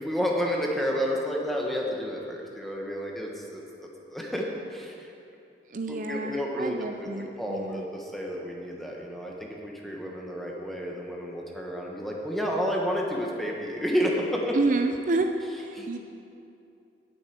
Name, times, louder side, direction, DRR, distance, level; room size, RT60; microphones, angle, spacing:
voice 1, 0.0-3.6 4.1-5.1 5.9-7.1 7.4-14.6 15.7-15.9, equal, ahead, -2 dB, 1.1 m, -30 dB
voice 2, 5.7-7.8 14.5-15.3 15.6-16.0, right 3 dB, 45° right, 5 dB, 0.5 m, -29 dB
9.4 x 7.3 x 8.5 m, 2.7 s
head